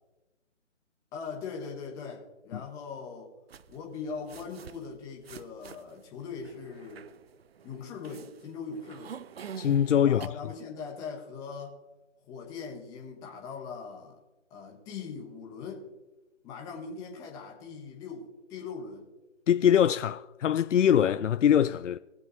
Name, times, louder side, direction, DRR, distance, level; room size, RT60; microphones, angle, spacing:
voice 1, 1.1-3.3 3.7-7.1 7.6-9.2 10.0-11.8 12.2-14.2 14.5-15.9 16.4-19.1, left 5 dB, 10° left, 1.1 m, -40 dB
sound 1, 3.5-10.3, right 7 dB, 55° right, 0.5 m, -47 dB
voice 2, 9.6-10.3 19.5-22.0, left 9 dB, 85° left, 0.5 m, -23 dB
20.0 x 7.8 x 3.1 m
hypercardioid pair, 155°, 36 cm